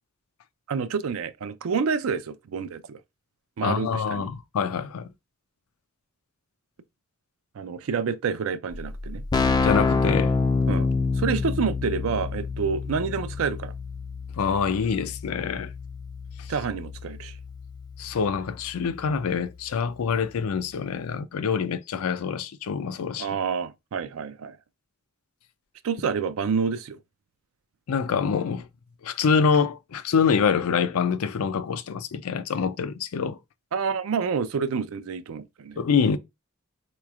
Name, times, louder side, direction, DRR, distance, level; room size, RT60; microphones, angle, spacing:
voice 1, 0.7-3.0 3.6-4.3 7.5-9.2 10.7-10.9 11.2-13.7 16.5-17.3 23.2-24.6 25.8-27.0 33.7-35.8, right 5 dB, 70° right, 0.4 m, -28 dB
voice 2, 3.6-5.1 9.6-10.4 14.4-15.7 18.0-23.3 27.9-28.7 29.0-33.4 35.8-36.2, left 6 dB, 85° left, 0.4 m, -25 dB
Keyboard (musical), 8.7-8.8 9.0-19.6, left 4 dB, 20° left, 0.3 m, -28 dB
4.0 x 3.1 x 2.3 m
head